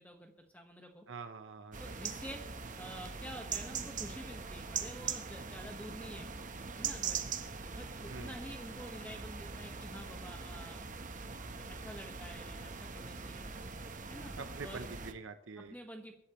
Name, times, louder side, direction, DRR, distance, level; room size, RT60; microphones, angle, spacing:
voice 1, 0.0-1.1 1.8-2.4 2.8-6.3 6.8-7.2 7.8-10.9 11.5-13.5 14.1-14.3 14.6-14.8 15.6-16.1, equal, 10° left, 3 dB, 1.4 m, -49 dB
voice 2, 1.1-2.0 8.1-8.3 14.4-15.8, right 4 dB, 65° right, 8 dB, 0.8 m, -45 dB
sound 1, 1.7-15.1, right 5 dB, 40° right, 1.1 m, -42 dB
24.0 x 11.5 x 3.1 m, 0.69 s
head